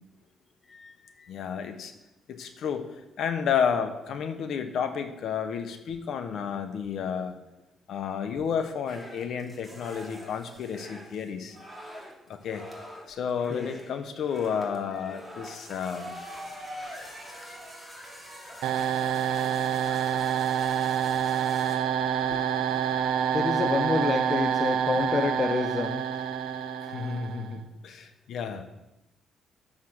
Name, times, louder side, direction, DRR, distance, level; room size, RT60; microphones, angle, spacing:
voice 1, 0.7-1.3 13.5-13.7 23.3-26.0, left 4 dB, 35° left, 7 dB, 0.7 m, -28 dB
voice 2, 1.3-1.9 2.3-2.9 3.2-7.4 7.9-11.6 12.3-12.7 13.1-16.1 22.3-22.4 23.9-24.0 24.9-25.0 26.9-28.7, left 7 dB, 70° left, 8 dB, 1.3 m, -31 dB
sound 1, 8.9-21.8, equal, 5° left, 2.8 m, -44 dB
sound 2, 18.6-27.5, right 8 dB, 80° right, 0.8 m, -27 dB
10.0 x 7.4 x 6.6 m, 0.94 s
cardioid pair, 90°, 0 cm